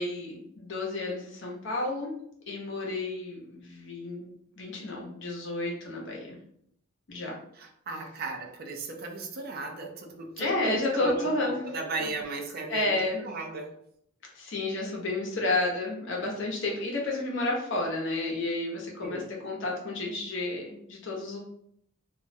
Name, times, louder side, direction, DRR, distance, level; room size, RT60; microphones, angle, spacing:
voice 1, 0.0-2.1 2.5-6.3 7.1-7.4 10.4-11.6 12.0-12.1 12.7-13.2 14.3-21.4, left 2 dB, 65° left, -2 dB, 0.7 m, -31 dB
voice 2, 7.6-13.7 19.0-19.3, right 3 dB, 50° right, 3 dB, 0.4 m, -36 dB
2.4 x 2.0 x 2.6 m, 0.69 s
head